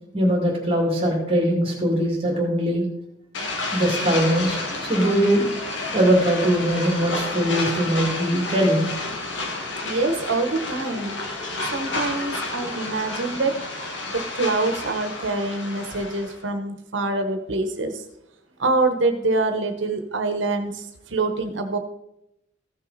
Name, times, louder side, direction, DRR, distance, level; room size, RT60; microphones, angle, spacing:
voice 1, 0.1-2.9 3.7-4.6 4.9-5.4 5.9-8.9 12.6-12.7, equal, 30° right, -1 dB, 2.3 m, -21 dB
sound 1, 3.3-16.4, left 2 dB, 80° left, 1.9 m, -30 dB
voice 2, 9.8-11.2 11.7-13.6 14.1-18.0 18.6-21.8, right 3 dB, 80° right, 6 dB, 1.1 m, -25 dB
15.0 x 6.3 x 4.1 m, 0.81 s
head